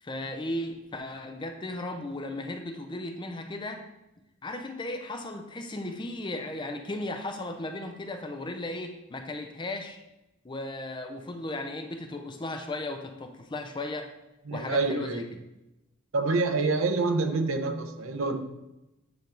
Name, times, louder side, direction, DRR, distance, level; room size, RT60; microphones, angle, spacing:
voice 1, 0.0-3.9 4.4-10.0 10.4-14.1 14.5-15.2, left 2 dB, 20° left, 6 dB, 0.5 m, -36 dB
voice 2, 14.5-15.3 16.1-18.4, right 3 dB, 70° right, 7 dB, 0.7 m, -27 dB
9.0 x 3.4 x 3.8 m, 0.96 s
head